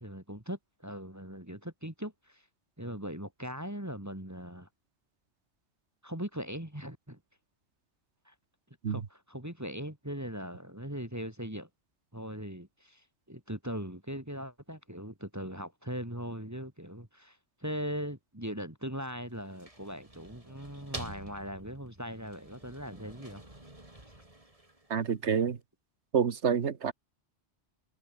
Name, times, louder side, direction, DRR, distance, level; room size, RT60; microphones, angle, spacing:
voice 1, 0.0-2.4 2.8-4.7 6.0-7.2 8.3-8.4 8.9-11.7 12.1-23.4, equal, 15° right, 2.9 m, -40 dB
sound 1, 19.2-25.3, right 1 dB, 30° right, 4.0 m, -48 dB
voice 2, 24.9-25.6 26.1-26.9, right 6 dB, 90° right, 1.6 m, -28 dB
omnidirectional pair, 1.1 m